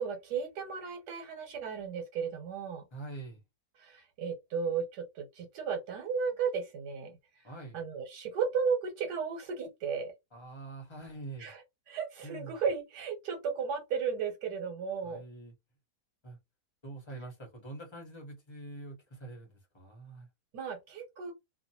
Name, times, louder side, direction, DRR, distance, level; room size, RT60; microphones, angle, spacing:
voice 1, 0.0-2.8 3.8-7.2 7.7-10.1 11.4-11.6 11.9-15.2 20.5-21.3, right 6 dB, 90° right, 1.4 m, -34 dB
voice 2, 2.9-3.4 7.4-7.8 10.3-11.5 12.2-12.6 15.0-15.5 16.2-16.4 16.8-20.3, right 2 dB, 20° left, 0.8 m, -45 dB
2.8 x 2.3 x 2.8 m
omnidirectional pair, 1.7 m